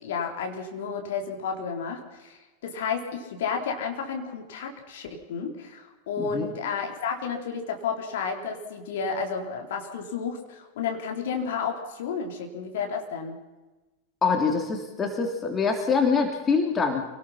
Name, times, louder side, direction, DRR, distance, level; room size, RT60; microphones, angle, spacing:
voice 1, 0.0-13.4, left 6 dB, 55° left, 2 dB, 4.0 m, -32 dB
voice 2, 14.2-17.0, left 5 dB, 20° left, 3 dB, 3.2 m, -24 dB
27.5 x 19.0 x 5.9 m, 1.1 s
figure-of-eight pair, 90°, 0 cm